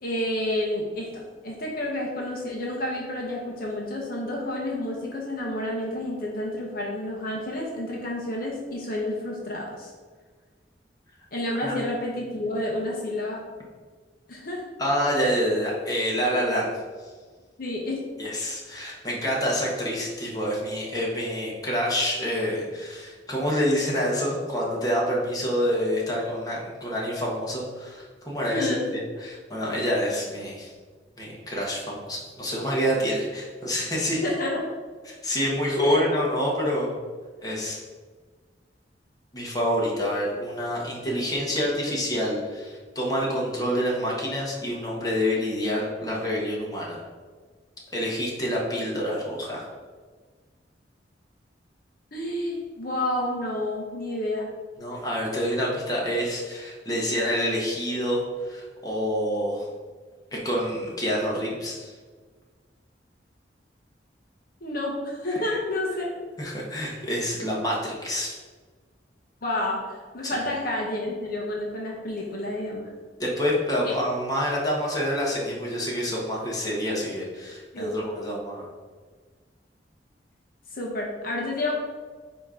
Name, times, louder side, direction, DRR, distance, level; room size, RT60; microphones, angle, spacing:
voice 1, 0.0-9.9 11.3-13.4 14.3-14.6 17.6-18.0 28.5-28.9 34.2-34.6 35.8-36.0 52.1-54.5 64.6-66.1 66.4-66.6 69.4-72.9 73.8-74.0 77.7-78.0 80.7-81.7, left 1 dB, 55° left, -2 dB, 1.0 m, -29 dB
voice 2, 14.8-16.8 18.2-28.8 29.2-30.7 31.2-34.2 35.1-37.0 37.4-37.8 39.3-47.0 47.9-49.7 54.8-59.7 60.3-61.9 66.4-68.4 70.2-70.4 73.2-78.7, equal, 20° left, -3 dB, 1.4 m, -27 dB
8.9 x 3.0 x 3.8 m, 1.5 s
head